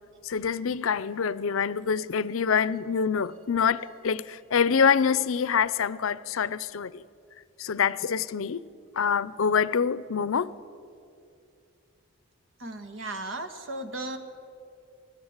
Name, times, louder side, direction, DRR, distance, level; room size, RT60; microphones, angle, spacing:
voice 1, 0.2-7.0 7.6-8.6 9.0-10.5, left 6 dB, 85° left, 0.6 m, -26 dB
voice 2, 12.6-14.2, right 2 dB, 65° right, 1.7 m, -35 dB
20.5 x 16.0 x 8.1 m
head